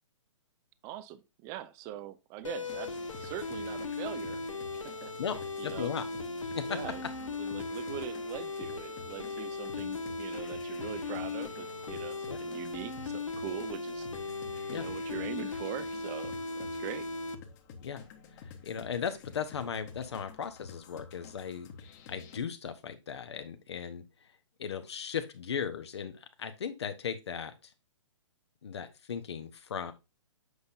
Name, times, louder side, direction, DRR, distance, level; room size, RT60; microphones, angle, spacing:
voice 1, 0.8-4.4 4.8-5.1 5.6-5.9 6.7-7.0 7.4-14.1 14.7-17.1, right 13 dB, 20° right, 0.4 m, -42 dB
sound 1, 2.4-17.4, left 3 dB, 75° left, 1.3 m, -38 dB
sound 2, 2.6-22.4, left 6 dB, 35° left, 1.3 m, -50 dB
voice 2, 5.6-6.0 6.5-6.8 12.3-12.4 14.7-14.8 17.8-18.0 18.3-21.7 22.1-24.3 24.6-27.7 28.6-29.9, left 7 dB, 55° left, 0.9 m, -37 dB
8.0 x 5.3 x 2.6 m
figure-of-eight pair, 125°, 16 cm